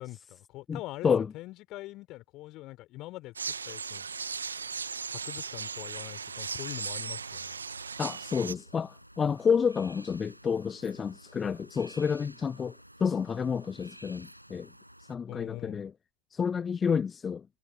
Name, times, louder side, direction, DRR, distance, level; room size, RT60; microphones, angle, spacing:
voice 1, 0.0-4.3 5.1-7.6 15.3-15.8, left 18 dB, 40° left, 4.2 m, -43 dB
voice 2, 0.7-1.3 8.0-12.7 13.0-14.7 15.1-15.9 16.3-17.4, left 6 dB, 20° left, 1.1 m, -29 dB
sound 1, 3.4-8.5, right 5 dB, 75° right, 1.5 m, -37 dB
sound 2, 6.2-15.2, equal, 90° right, 6.0 m, -52 dB
figure-of-eight pair, 90°, 0 cm